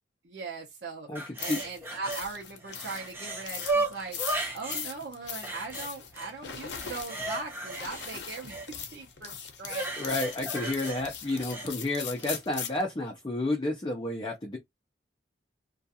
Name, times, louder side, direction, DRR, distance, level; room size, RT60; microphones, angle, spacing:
voice 1, 0.2-1.1 1.4-4.2 4.5-8.6 8.9-9.9, right 4 dB, 65° right, 0.6 m, -39 dB
sound 1, 1.1-2.3 2.6-4.9 5.4-6.3 6.7-8.7 9.7-11.7 12.2-12.3, right 2 dB, 15° right, 0.7 m, -35 dB
sound 2, 1.4-12.8, left 7 dB, 70° left, 0.6 m, -40 dB
voice 2, 10.0-14.6, left 2 dB, 25° left, 0.5 m, -31 dB
2.4 x 2.3 x 2.7 m
head